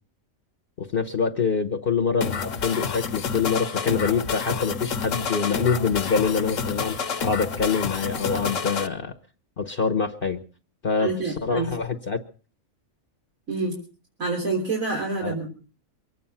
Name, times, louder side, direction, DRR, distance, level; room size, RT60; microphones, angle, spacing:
voice 1, 0.8-9.2 9.6-10.4 10.8-12.2 15.2-15.3, left 5 dB, 45° left, 8 dB, 1.1 m, -25 dB
sound 1, 2.2-8.9, left 6 dB, 70° left, 1.4 m, -29 dB
voice 2, 11.0-11.7 13.5-13.7 14.2-15.5, right 3 dB, 90° right, -2 dB, 4.2 m, -27 dB
23.5 x 9.3 x 5.7 m, 0.40 s
omnidirectional pair, 1.4 m